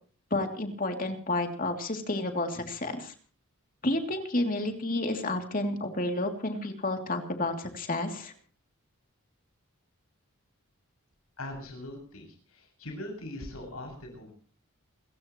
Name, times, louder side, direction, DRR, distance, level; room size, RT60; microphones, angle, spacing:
voice 1, 0.3-3.1 3.8-8.3, left 2 dB, 40° left, 4 dB, 3.0 m, -30 dB
voice 2, 11.4-14.3, left 1 dB, 80° left, 2 dB, 7.2 m, -41 dB
28.5 x 15.5 x 3.1 m, 0.42 s
head